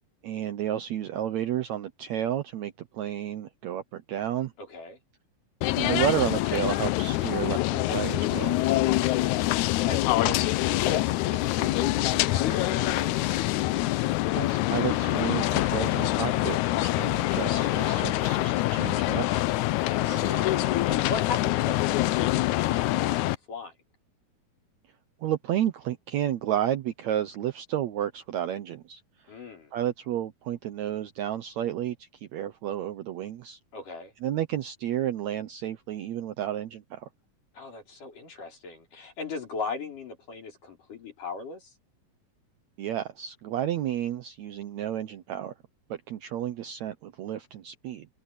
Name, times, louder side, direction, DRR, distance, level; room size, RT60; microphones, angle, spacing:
voice 1, 0.2-4.5 5.7-8.6 14.4-19.4 25.2-29.0 29.7-33.6 34.2-37.1 42.8-45.5 45.9-48.1, right 11 dB, 70° right, 1.7 m, -31 dB
voice 2, 4.6-5.0 8.8-12.6 19.9-23.7 29.3-29.7 33.7-34.1 37.5-41.7, left 4 dB, 65° left, 7.2 m, -38 dB
sound 1, 5.6-23.3, left 17 dB, 90° left, 1.7 m, -25 dB
sound 2, 12.2-14.1 14.7-16.5 17.2-19.1 19.8-21.6, right 6 dB, 40° right, 4.7 m, -45 dB
omnidirectional pair, 4.1 m